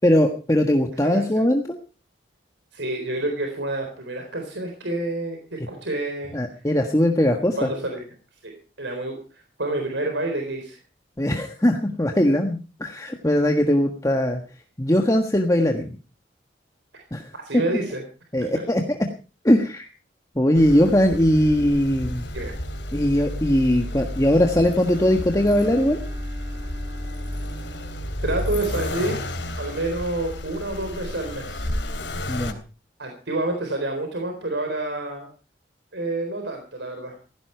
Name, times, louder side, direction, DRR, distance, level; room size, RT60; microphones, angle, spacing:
voice 1, 0.0-1.8 6.3-7.7 11.2-14.4 14.8-15.9 17.1-17.6 18.3-19.0 19.4-19.9 20.3-22.3 22.9-26.0 32.3-32.6, left 1 dB, 20° left, 4 dB, 1.4 m, -20 dB
voice 2, 1.0-1.4 2.7-6.3 7.6-8.0 8.4-10.8 16.9-17.0 17.3-18.0 22.3-22.5 28.2-29.2 29.6-31.7 33.0-35.3 35.9-37.2, right 2 dB, 80° right, 3 dB, 4.0 m, -28 dB
Accelerating revving vroom, 20.5-32.5, left 1 dB, 80° left, 3.4 m, -32 dB
Bowed string instrument, 24.3-28.9, right 3 dB, 15° right, 3.5 m, -45 dB
16.5 x 16.0 x 4.5 m, 0.35 s
head